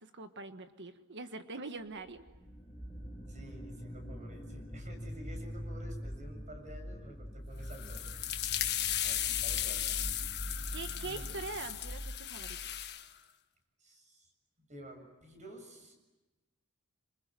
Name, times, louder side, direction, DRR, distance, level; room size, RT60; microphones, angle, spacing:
voice 1, 0.0-2.3 10.7-12.6, right 3 dB, 55° right, 8 dB, 1.5 m, -43 dB
sound 1, 2.1-12.7, equal, 5° left, 7.8 m, -44 dB
voice 2, 3.3-8.1 8.4-9.9 11.0-11.3 13.8-14.3 14.7-15.9, right 1 dB, 35° right, 5 dB, 7.1 m, -51 dB
sound 2, 7.7-13.1, left 12 dB, 50° left, 1.6 m, -36 dB
28.0 x 26.5 x 7.7 m, 1.1 s
head